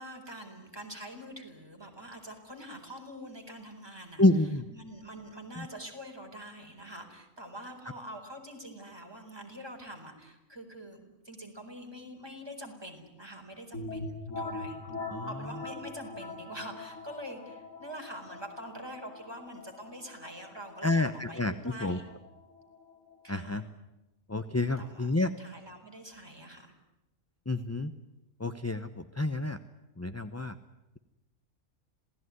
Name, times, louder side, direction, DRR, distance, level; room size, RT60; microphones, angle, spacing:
voice 1, 0.0-4.2 4.7-14.8 15.3-22.0 23.2-23.6 24.8-25.1 25.4-26.7, equal, 15° right, 3 dB, 4.7 m, -45 dB
voice 2, 4.2-4.7 5.6-5.7 15.1-15.5 20.8-22.0 23.3-23.6 24.3-25.3 27.5-27.9 28.4-29.6 30.0-30.6, left 2 dB, 15° left, 10 dB, 0.6 m, -29 dB
sound 1, 13.7-23.3, left 2 dB, 70° left, 5.5 m, -42 dB
27.0 x 18.5 x 9.6 m, 0.97 s
omnidirectional pair, 1.5 m